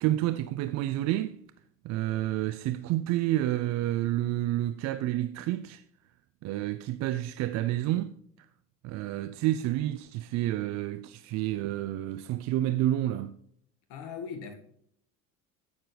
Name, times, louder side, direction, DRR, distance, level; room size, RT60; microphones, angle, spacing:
voice 1, 0.0-1.4 1.8-5.8 6.4-8.1 8.8-13.3, right 14 dB, 40° right, 0.4 m, -29 dB
voice 2, 13.9-14.5, left 6 dB, 55° left, 1.8 m, -39 dB
15.0 x 6.8 x 3.2 m
figure-of-eight pair, 65°, 46 cm